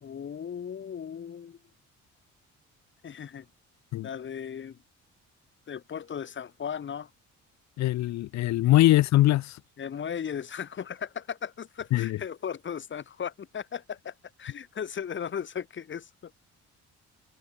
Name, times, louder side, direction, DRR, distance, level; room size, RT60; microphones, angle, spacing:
voice 1, 0.0-1.6 3.0-3.5 4.0-4.8 5.7-7.1 9.8-16.3, left 8 dB, 40° left, 1.0 m, -36 dB
voice 2, 7.8-9.6 11.9-12.2, left 15 dB, 65° left, 0.5 m, -22 dB
cardioid pair, 90°, 30 cm